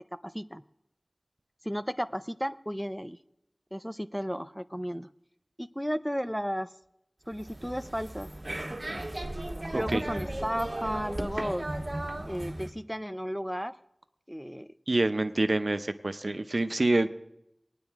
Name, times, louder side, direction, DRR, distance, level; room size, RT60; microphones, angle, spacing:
voice 1, 0.1-0.6 1.6-3.2 3.7-5.1 5.6-6.7 7.3-8.3 9.7-11.7 12.3-13.8 14.3-14.7, equal, ahead, 12 dB, 0.4 m, -34 dB
sound 1, 7.3-12.7, right 1 dB, 55° right, 1.2 m, -36 dB
voice 2, 14.9-17.1, right 2 dB, 90° right, 9 dB, 0.6 m, -26 dB
19.0 x 9.8 x 3.5 m, 0.83 s
wide cardioid pair, 45°, 0 cm